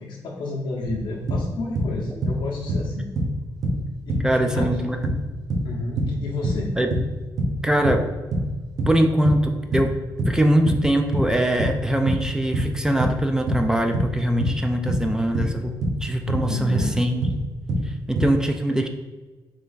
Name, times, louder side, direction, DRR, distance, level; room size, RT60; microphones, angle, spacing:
voice 1, 0.0-3.1 4.0-4.7 5.6-6.7 16.5-16.9, left 2 dB, 75° left, -4 dB, 0.6 m, -31 dB
sound 1, 0.8-1.9 2.2-3.4 3.6-9.4 9.7-16.9 17.2-18.3, right 1 dB, 50° right, 0.8 m, -24 dB
voice 2, 4.2-5.0 6.8-6.9 7.6-8.0 8.9-9.9 10.3-17.3 17.9-18.9, right 1 dB, 10° right, 5 dB, 0.3 m, -22 dB
3.4 x 3.3 x 3.9 m, 1.3 s
cardioid pair, 135°, 8 cm